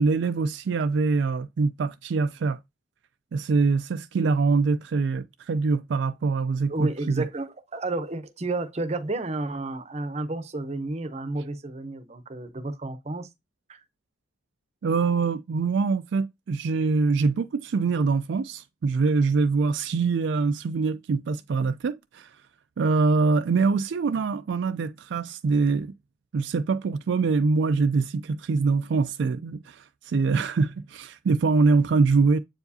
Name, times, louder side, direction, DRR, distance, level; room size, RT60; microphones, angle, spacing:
voice 1, 0.0-2.6 3.3-7.3 14.8-22.4 22.8-25.9 26.3-32.4, right 4 dB, 65° right, 0.3 m, -24 dB
voice 2, 6.7-13.3 13.7-13.8, right 2 dB, 35° right, 0.7 m, -31 dB
7.7 x 4.7 x 2.7 m
head